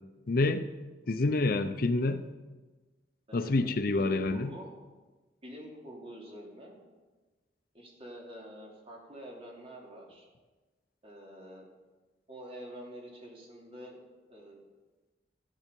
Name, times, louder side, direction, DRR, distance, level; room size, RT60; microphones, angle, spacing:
voice 1, 0.3-0.7 1.1-2.2 3.3-4.5, left 2 dB, 55° left, 11 dB, 0.6 m, -27 dB
voice 2, 3.3-4.8 5.4-6.8 7.7-10.3 11.0-11.7 12.3-14.0 14.3-14.7, equal, 35° right, -1 dB, 3.0 m, -47 dB
14.5 x 10.0 x 5.4 m, 1.2 s
head